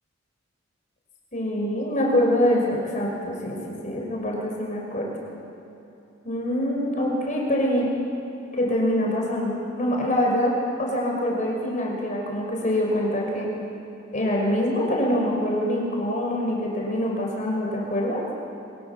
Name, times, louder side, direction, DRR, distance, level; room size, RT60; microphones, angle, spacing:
voice 1, 1.3-5.1 6.2-7.9 8.5-13.5 14.1-18.2, left 1 dB, 40° left, -1 dB, 5.6 m, -25 dB
27.5 x 23.5 x 7.3 m, 2.9 s
head